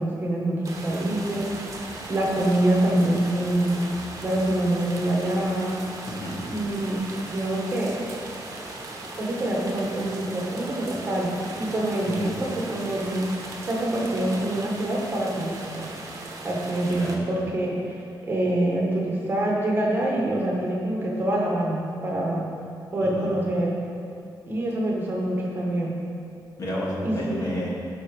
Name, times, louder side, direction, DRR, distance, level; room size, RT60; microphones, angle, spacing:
voice 1, 0.0-4.0 4.2-5.8 6.5-8.0 9.2-13.3 13.6-15.9 16.4-22.5 22.9-23.8 24.5-26.0 27.0-27.4, right 1 dB, 25° right, -3 dB, 1.5 m, -26 dB
sound 1, 0.6-17.2, right 2 dB, 40° right, 1.1 m, -38 dB
voice 2, 6.1-6.4 12.0-12.3 16.8-17.2 23.0-23.3 26.6-27.7, left 1 dB, 45° left, -5 dB, 2.4 m, -32 dB
12.0 x 5.8 x 5.5 m, 2.4 s
wide cardioid pair, 180°, 8 cm